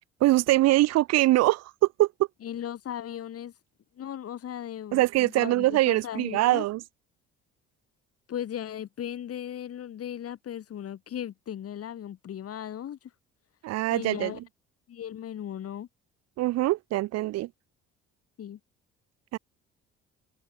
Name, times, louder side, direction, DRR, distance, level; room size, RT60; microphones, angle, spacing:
voice 1, 0.2-1.7 2.0-2.1 4.9-6.8 13.6-14.3 16.4-17.5 19.3-19.4, right 17 dB, 60° right, 0.4 m, -23 dB
voice 2, 2.4-3.5 4.0-6.6 8.3-13.0 13.9-14.4 14.9-15.9 18.4-18.6, left 10 dB, 50° left, 1.5 m, -37 dB
supercardioid pair, 65°, 30 cm